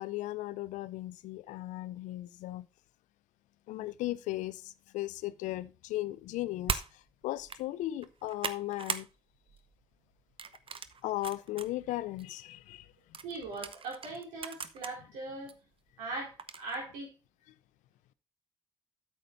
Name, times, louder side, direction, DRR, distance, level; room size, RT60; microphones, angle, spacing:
voice 1, 0.0-2.7 3.7-9.1 11.0-12.9, left 16 dB, 75° left, 0.5 m, -37 dB
sound 1, 6.7-6.9 7.4-7.6 8.0-9.1 9.5-9.7 10.4-11.7 12.2-12.3 13.1-14.9 15.5-15.6 16.4-16.8, right 6 dB, 45° right, 0.8 m, -38 dB
voice 2, 13.2-15.5 16.0-17.1, right 2 dB, 80° right, 4.1 m, -40 dB
8.8 x 7.0 x 3.9 m
hypercardioid pair, 40°, 13 cm